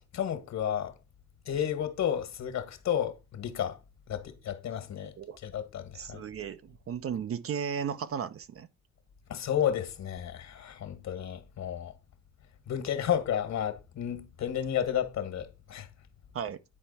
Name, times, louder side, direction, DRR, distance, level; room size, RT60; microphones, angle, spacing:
voice 1, 0.1-0.9 1.5-3.8 4.1-5.1 5.4-6.2 9.3-11.9 12.7-15.9, left 9 dB, 65° left, 1.7 m, -32 dB
voice 2, 5.9-8.7 16.3-16.6, right 7 dB, 50° right, 0.7 m, -35 dB
9.9 x 4.5 x 4.2 m
cardioid pair, 90°, 30 cm